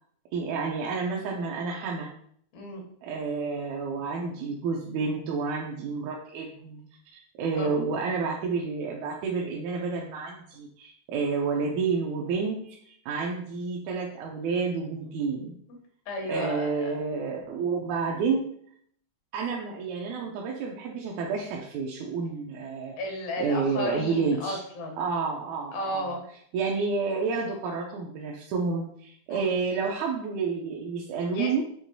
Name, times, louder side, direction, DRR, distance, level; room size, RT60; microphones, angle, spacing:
voice 1, 0.3-2.1 3.0-6.8 7.1-15.6 16.3-18.5 19.3-23.0 23.4-24.6 25.0-26.1 26.5-31.6, right 4 dB, 80° right, -1 dB, 1.9 m, -30 dB
voice 2, 16.1-16.9 23.0-25.0 25.7-26.3 29.3-29.5 31.3-31.6, left 1 dB, 80° left, 1 dB, 2.3 m, -33 dB
6.3 x 2.9 x 2.6 m, 0.64 s
omnidirectional pair, 3.4 m